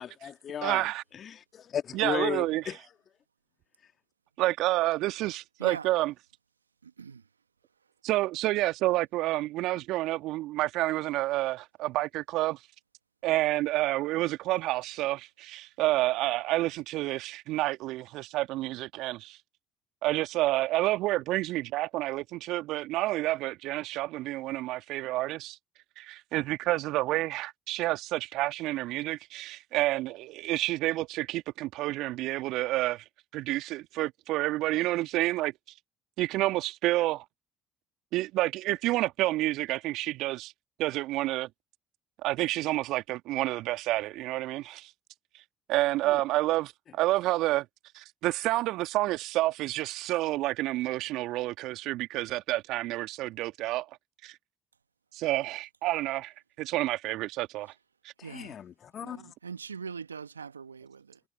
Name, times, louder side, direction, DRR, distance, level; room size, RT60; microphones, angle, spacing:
voice 1, 0.0-0.9 1.2-1.3 1.7-2.8 46.1-46.2 58.2-59.3, left 8 dB, 45° left, 1.9 m, -35 dB
voice 2, 0.6-1.0 1.9-2.6 4.4-6.1 8.0-12.6 13.2-19.4 20.0-25.6 26.0-33.0 33.3-35.5 36.2-37.2 38.1-40.5 40.8-41.5 42.2-44.9 45.7-47.6 47.9-53.9 54.2-54.4 55.1-57.7 58.0-58.1, right 17 dB, 65° right, 1.8 m, -29 dB
voice 3, 5.6-5.9 6.8-7.3 58.2-58.6 59.0-61.2, right 6 dB, 90° right, 1.5 m, -41 dB
figure-of-eight pair, 55°, 0 cm